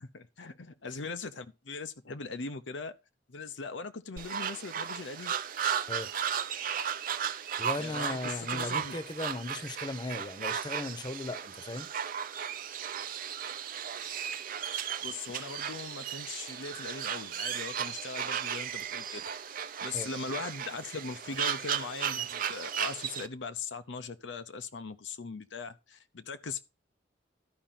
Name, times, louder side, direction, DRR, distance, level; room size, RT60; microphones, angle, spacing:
voice 1, 0.0-2.9 3.3-5.3 7.8-8.9 15.0-26.6, left 4 dB, 90° left, 0.8 m, -40 dB
sound 1, 4.2-23.3, right 8 dB, 50° right, 0.7 m, -35 dB
voice 2, 7.6-11.9 14.0-14.2 19.9-20.1, left 2 dB, 25° left, 0.9 m, -37 dB
12.0 x 5.1 x 5.8 m
head